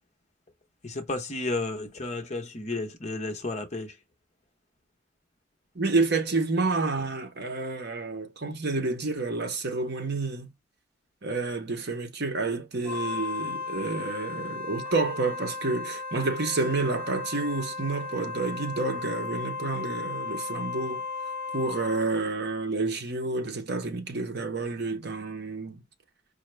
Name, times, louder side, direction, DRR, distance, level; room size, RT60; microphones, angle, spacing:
voice 1, 0.8-3.9, left 2 dB, 35° left, 0.8 m, -32 dB
voice 2, 5.7-10.5 11.2-21.0 21.5-25.8, right 3 dB, 55° right, 0.9 m, -29 dB
Wind instrument woodwind instrument, 12.8-22.1, left 4 dB, 15° left, 1.2 m, -35 dB
5.1 x 2.2 x 3.1 m
head